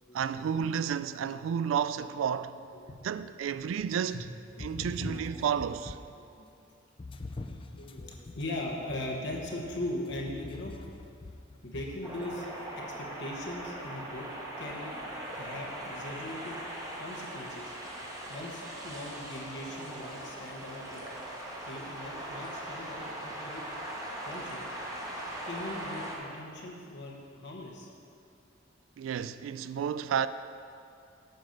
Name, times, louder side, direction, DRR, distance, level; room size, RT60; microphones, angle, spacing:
voice 1, 0.1-2.6 3.0-4.3 4.6-6.0 29.0-30.3, right 8 dB, 80° right, 0.3 m, -31 dB
voice 2, 3.0-3.4 4.1-4.2 4.6-5.3 6.2-6.5 7.5-10.7 11.6-12.5 12.8-14.3 14.6-14.9 15.4-16.6 17.0-17.7 18.3-21.0 21.6-23.6 24.2-24.7 25.5-27.9, left 1 dB, 65° left, 1.2 m, -40 dB
sound 1, 4.5-6.3 7.0-12.4, left 2 dB, 25° left, 0.4 m, -44 dB
sound 2, 12.0-26.2, right 1 dB, 20° right, 1.2 m, -40 dB
8.1 x 5.9 x 5.2 m
head